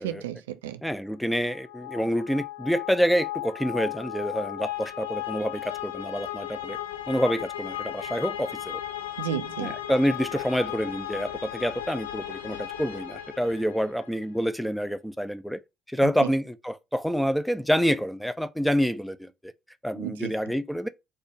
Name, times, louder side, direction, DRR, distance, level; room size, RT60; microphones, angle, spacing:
voice 1, 0.0-0.8 9.2-9.8 16.0-16.3 20.0-20.3, right 10 dB, 75° right, 0.4 m, -33 dB
voice 2, 0.8-6.8 7.1-8.8 9.6-15.6 15.9-19.3 19.8-20.9, equal, ahead, 0.5 m, -27 dB
sound 1, 1.3-14.1, left 12 dB, 80° left, 0.5 m, -36 dB
4.3 x 2.6 x 4.4 m
figure-of-eight pair, 50°, 0 cm